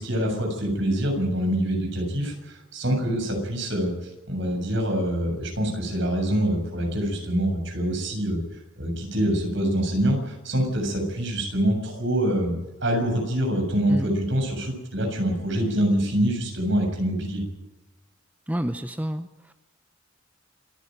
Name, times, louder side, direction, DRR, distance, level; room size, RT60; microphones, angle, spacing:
voice 1, 0.0-8.4 8.8-12.5 12.8-17.4, right 1 dB, 65° right, 3 dB, 7.4 m, -25 dB
voice 2, 18.5-19.5, right 1 dB, 10° right, 9 dB, 0.7 m, -29 dB
27.5 x 10.5 x 9.2 m, 1.0 s
head